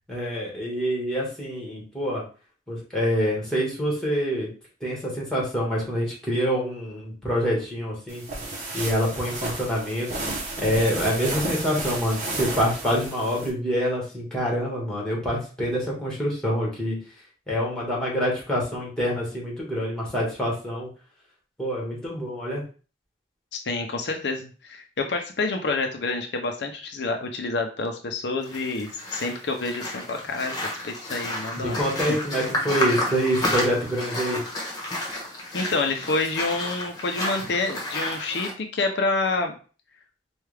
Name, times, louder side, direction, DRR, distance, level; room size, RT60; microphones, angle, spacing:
voice 1, 0.1-2.2 2.7-4.5 4.8-8.2 8.7-10.1 10.6-17.0 17.5-20.9 21.6-22.6 31.6-34.4, equal, 5° left, -4 dB, 1.5 m, -26 dB
sound 1, 8.1-13.5, right 2 dB, 45° right, 1.0 m, -32 dB
voice 2, 23.5-30.5 30.8-31.8 32.1-32.2 35.5-39.5, left 3 dB, 75° left, 4 dB, 0.6 m, -28 dB
sound 2, 28.4-38.5, left 1 dB, 20° left, 1.2 m, -31 dB
4.6 x 2.4 x 3.3 m, 0.37 s
head